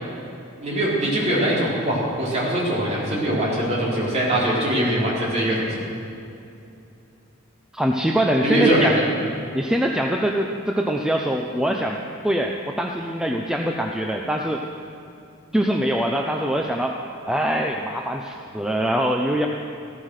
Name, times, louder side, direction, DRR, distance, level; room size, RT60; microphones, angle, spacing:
voice 1, 0.6-5.7 8.4-9.0, right 1 dB, 30° right, -6 dB, 4.4 m, -22 dB
voice 2, 7.7-9.0 9.5-12.0 12.2-14.6 15.5-17.0 17.3-19.5, equal, 5° right, 1 dB, 0.7 m, -23 dB
15.5 x 14.0 x 6.5 m, 2.6 s
head